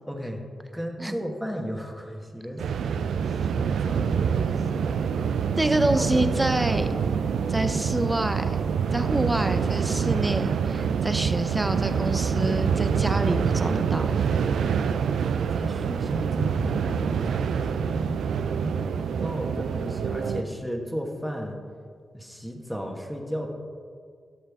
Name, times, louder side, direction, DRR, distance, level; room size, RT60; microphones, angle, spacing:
voice 1, 0.1-0.4 0.7-2.6 3.3-4.9 5.9-6.1 7.0-7.3 15.5-17.5 17.7-21.6 22.1-23.5, equal, ahead, 1 dB, 1.5 m, -35 dB
sound 1, 2.6-20.4, right 7 dB, 85° right, 0.3 m, -26 dB
voice 2, 5.6-6.9 7.5-8.6 8.9-14.1, right 1 dB, 15° right, 9 dB, 0.7 m, -27 dB
12.0 x 6.4 x 3.6 m, 2.1 s
cardioid pair, 55°, 0 cm